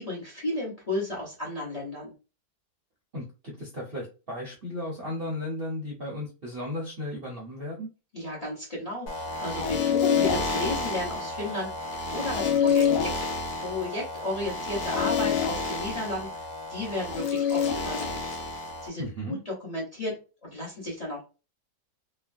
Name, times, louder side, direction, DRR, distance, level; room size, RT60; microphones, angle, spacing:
voice 1, 0.0-2.1 8.1-13.1 13.5-18.2 18.8-21.2, left 1 dB, 25° left, -3 dB, 1.0 m, -34 dB
voice 2, 3.1-7.9 19.0-19.4, left 1 dB, 45° right, -4 dB, 0.8 m, -35 dB
sound 1, 9.1-18.9, left 6 dB, 70° left, 1.2 m, -28 dB
3.2 x 2.2 x 2.5 m, 0.31 s
omnidirectional pair, 1.8 m